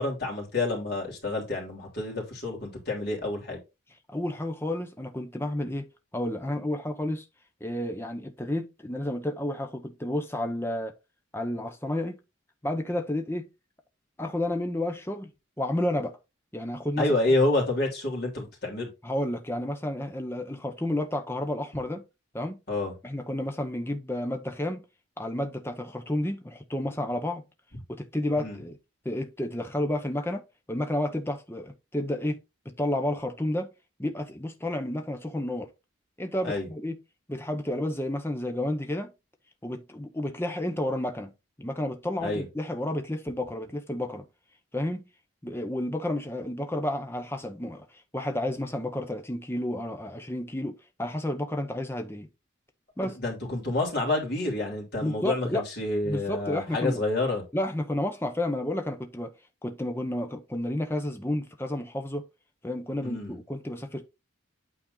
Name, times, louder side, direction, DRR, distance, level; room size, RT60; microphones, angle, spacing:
voice 1, 0.0-3.6 17.0-18.9 22.7-22.9 28.4-28.6 36.4-36.7 42.2-42.5 53.0-57.4 63.0-63.4, left 2 dB, 50° left, 3.3 m, -28 dB
voice 2, 4.1-5.9 6.1-7.2 7.6-10.9 11.3-12.2 12.6-13.5 14.2-15.3 15.6-16.2 16.5-17.1 19.0-22.0 22.3-22.6 23.0-24.8 25.2-27.4 27.9-28.8 29.0-30.4 30.7-32.4 32.6-33.7 34.0-35.7 36.2-37.0 37.3-39.1 39.6-41.3 41.6-44.2 44.7-45.0 45.4-47.8 48.1-52.3 53.0-53.2 55.0-55.6 56.0-57.0 57.5-59.3 59.6-62.2 62.6-64.0, left 1 dB, 10° left, 0.9 m, -31 dB
8.9 x 4.2 x 3.9 m
head